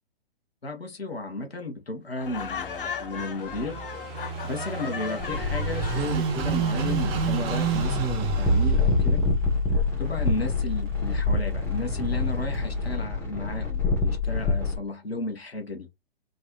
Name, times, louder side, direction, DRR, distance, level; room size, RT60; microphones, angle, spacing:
voice 1, 0.6-3.8 4.4-9.2 10.0-15.9, left 2 dB, 85° left, 1.1 m, -34 dB
Laughter, 2.2-6.2, left 7 dB, 60° left, 0.6 m, -36 dB
Car passing by / Idling, 2.3-12.9, right 7 dB, 25° right, 0.7 m, -32 dB
sound 1, 5.2-14.8, left 3 dB, 5° left, 0.9 m, -26 dB
3.2 x 2.3 x 3.0 m
figure-of-eight pair, 120°, 30 cm